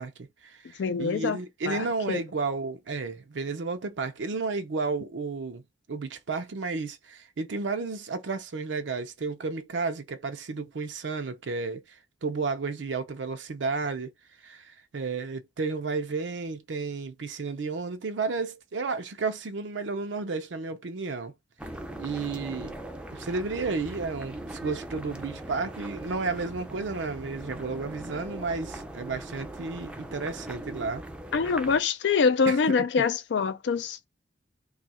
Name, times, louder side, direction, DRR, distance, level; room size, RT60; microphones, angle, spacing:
voice 1, 0.0-5.6 5.9-12.0 12.2-14.1 14.4-21.3 22.0-22.7 23.1-31.0 32.5-32.6 33.0-33.1, right 4 dB, 90° right, 0.5 m, -32 dB
voice 2, 0.8-1.4 1.7-2.2 31.3-34.0, left 5 dB, 75° left, 0.4 m, -25 dB
sound 1, 21.6-31.8, right 1 dB, 5° right, 0.4 m, -40 dB
2.7 x 2.3 x 4.1 m
head